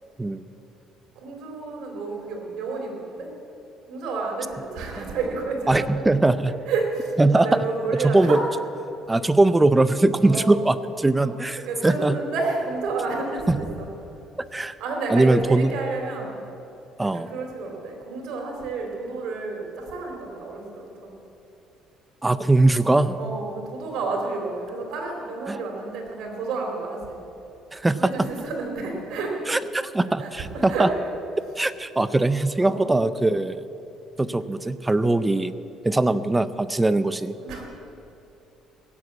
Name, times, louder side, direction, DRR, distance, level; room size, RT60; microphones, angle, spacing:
voice 1, 1.2-3.3 3.9-6.0 6.7-8.4 10.2-10.5 11.2-13.9 14.8-16.4 17.0-21.1 22.6-22.7 23.2-27.2 28.0-29.3 30.2-30.9 31.4-31.5 32.6-33.0 35.0-35.2 37.3-37.6, right 3 dB, 70° right, 1 dB, 3.6 m, -30 dB
voice 2, 5.7-6.5 7.2-7.7 8.0-8.4 9.1-12.2 13.5-13.6 14.5-14.8 15.1-15.7 17.0-17.3 22.2-23.2 25.5-25.6 27.7-28.3 29.5-30.9 31.6-33.7 34.2-35.5 35.8-37.3, right 2 dB, 10° right, 14 dB, 0.5 m, -21 dB
17.0 x 7.9 x 8.3 m, 2.8 s
cardioid pair, 120°, 0 cm